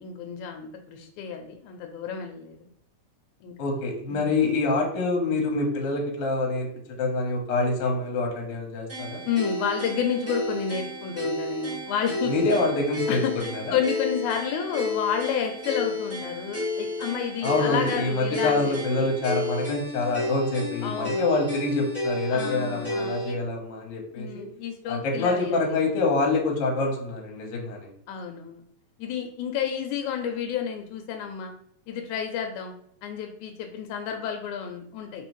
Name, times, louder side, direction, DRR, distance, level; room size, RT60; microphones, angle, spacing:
voice 1, 0.0-2.7 3.4-3.5 4.1-4.3 9.3-12.3 13.1-13.3 13.7-19.1 20.8-21.3 22.3-23.4 24.1-25.8 28.1-28.6 29.0-31.5 31.9-32.7 33.0-35.3, left 7 dB, 85° left, 4 dB, 2.0 m, -30 dB
voice 2, 3.6-6.7 7.0-9.2 12.3-13.2 13.5-13.8 17.4-24.5 24.9-27.9, left 3 dB, 60° left, 1 dB, 1.7 m, -26 dB
sound 1, 8.9-23.3, left 2 dB, 25° right, 0.3 m, -32 dB
4.1 x 3.7 x 3.0 m, 0.68 s
omnidirectional pair, 3.5 m